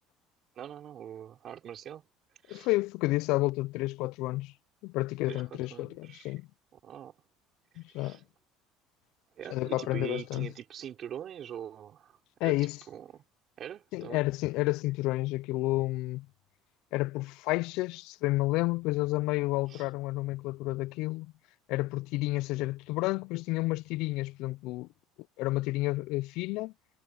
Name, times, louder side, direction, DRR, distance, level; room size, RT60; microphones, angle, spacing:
voice 1, 0.6-2.1 2.4-2.7 5.3-6.3 6.7-7.1 7.9-8.2 9.4-12.6 12.9-13.2 13.6-14.2 19.7-19.8, right 10 dB, 40° right, 4.2 m, -43 dB
voice 2, 2.5-4.5 4.8-6.5 7.8-8.2 9.5-10.5 12.4-12.8 13.9-16.3 16.9-21.3 21.7-24.9 25.4-26.7, left 20 dB, 65° left, 0.4 m, -30 dB
cardioid pair, 145°, 0 cm